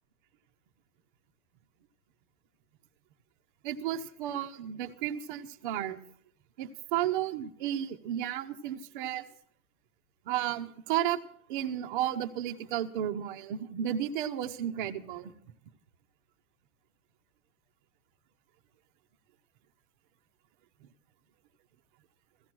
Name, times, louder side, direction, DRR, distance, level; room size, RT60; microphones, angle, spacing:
voice 1, 3.6-6.0 6.6-9.3 10.2-11.2 11.5-15.3, right 11 dB, 35° right, 7 dB, 0.8 m, -33 dB
16.0 x 14.5 x 6.1 m, 0.62 s
supercardioid pair, 160°, 44 cm